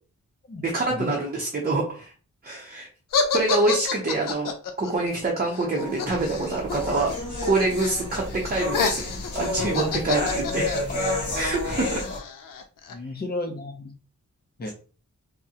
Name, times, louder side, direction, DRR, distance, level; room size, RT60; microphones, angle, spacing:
voice 1, 0.6-2.1 2.4-2.9 3.3-4.5 4.8-7.1 7.4-9.0 9.3-10.7 11.3-12.0 14.7-14.8, right 2 dB, 30° right, -1 dB, 0.6 m, -25 dB
sound 1, 3.1-7.1 7.4-8.0 8.3-12.9, left 5 dB, 80° left, 0.5 m, -29 dB
sound 2, 5.8-12.2, left 2 dB, 65° left, 1.1 m, -31 dB
sound 3, 6.1-12.0, equal, 75° right, 0.8 m, -39 dB
voice 2, 12.9-13.9 14.6-14.7, left 2 dB, 30° left, 4 dB, 0.5 m, -32 dB
3.5 x 2.0 x 2.8 m, 0.37 s
wide cardioid pair, 105°, 32 cm